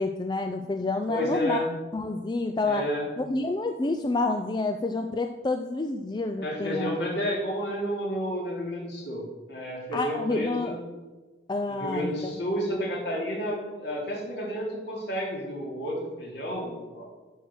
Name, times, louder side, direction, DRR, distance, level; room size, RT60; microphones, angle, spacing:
voice 1, 0.0-1.6 1.9-2.9 3.2-6.9 9.9-10.7 11.5-12.3, left 2 dB, 25° left, 6 dB, 0.4 m, -28 dB
voice 2, 0.6-1.6 2.6-3.1 6.4-9.2 9.5-10.8 11.7-17.1, equal, 60° left, -2 dB, 2.9 m, -31 dB
8.9 x 6.6 x 6.2 m, 1.3 s
head